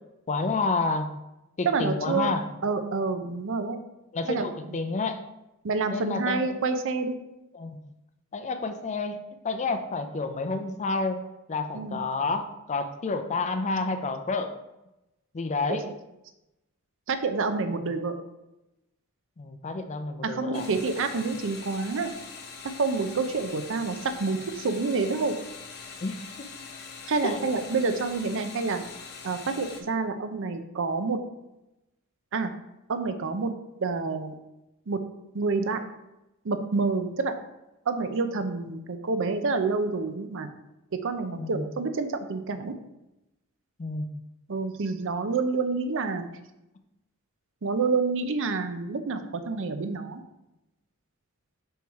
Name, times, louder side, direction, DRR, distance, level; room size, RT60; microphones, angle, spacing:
voice 1, 0.3-1.1 1.6-2.4 4.1-5.2 5.9-6.5 7.5-7.8 8.3-14.5 15.3-15.8 17.8-17.9 19.4-20.7 26.0-26.5 27.2-27.5 41.4-41.7 43.8-44.1, left 3 dB, 35° left, 7 dB, 0.5 m, -30 dB
voice 2, 1.6-2.3 2.6-3.8 4.3-4.5 5.6-7.2 11.7-12.0 15.7-15.9 17.1-18.1 20.2-22.1 22.8-25.4 27.1-28.8 29.2-31.2 32.3-32.5 32.9-33.5 33.8-34.3 34.9-35.0 35.3-35.8 36.4-37.3 37.9-40.5 40.9-42.7 44.5-46.3 47.6-50.2, right 4 dB, 60° right, 9 dB, 0.6 m, -28 dB
sound 1, 20.5-29.8, left 5 dB, 50° left, 0.9 m, -43 dB
5.4 x 4.6 x 4.7 m, 0.94 s
head